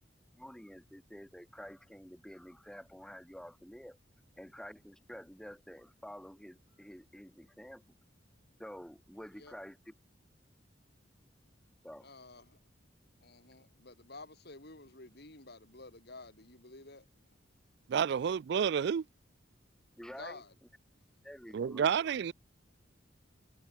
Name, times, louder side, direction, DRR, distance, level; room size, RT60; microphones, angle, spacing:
voice 1, 0.3-4.0 4.3-7.9 8.6-9.9 11.8-12.1 20.0-20.4 21.2-21.9, equal, 5° left, 1.2 m, -49 dB
voice 2, 12.0-12.6 13.2-17.1 20.2-20.5, left 3 dB, 60° left, 4.0 m, -51 dB
voice 3, 17.9-19.0 21.5-22.3, right 7 dB, 60° right, 0.3 m, -30 dB
head